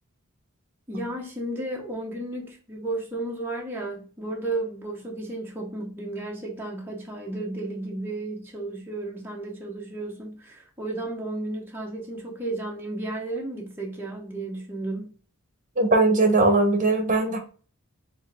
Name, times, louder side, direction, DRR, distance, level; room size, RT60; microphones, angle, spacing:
voice 1, 0.9-15.1, right 2 dB, 10° right, 0.7 m, -33 dB
voice 2, 15.8-17.4, right 2 dB, 35° right, 0.9 m, -20 dB
4.4 x 2.6 x 3.2 m
head